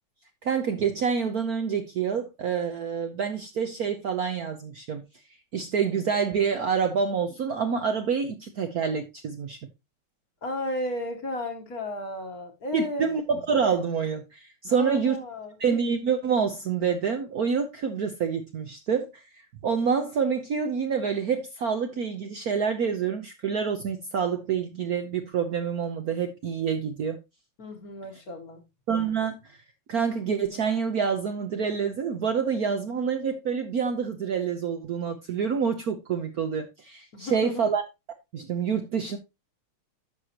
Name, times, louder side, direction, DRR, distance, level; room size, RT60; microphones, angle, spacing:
voice 1, 0.4-5.0 5.5-9.6 12.7-15.2 15.6-27.2 28.9-29.6 29.9-37.8 38.3-39.2, right 6 dB, 60° right, 1.0 m, -27 dB
voice 2, 10.4-13.1 14.7-15.6 27.6-28.6 37.1-37.7, left 1 dB, 50° left, 1.5 m, -33 dB
11.0 x 6.5 x 2.9 m
omnidirectional pair, 2.4 m